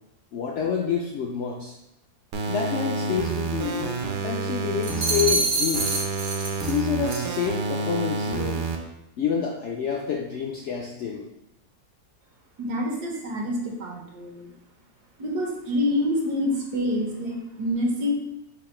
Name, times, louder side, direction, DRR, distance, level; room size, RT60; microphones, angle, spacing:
voice 1, 0.3-1.8 2.5-3.8 4.2-5.9 6.6-8.7 9.2-11.2, left 7 dB, 70° left, -1 dB, 0.6 m, -28 dB
sound 1, 2.3-5.3 5.7-8.8, right 4 dB, 65° right, 0.7 m, -29 dB
sound 2, 4.8-6.8 7.1-7.4, right 2 dB, 40° right, 0.4 m, -26 dB
voice 2, 12.6-14.5 15.2-18.1, left 1 dB, 80° right, 0 dB, 1.5 m, -27 dB
4.7 x 2.5 x 4.2 m, 0.82 s
omnidirectional pair, 1.7 m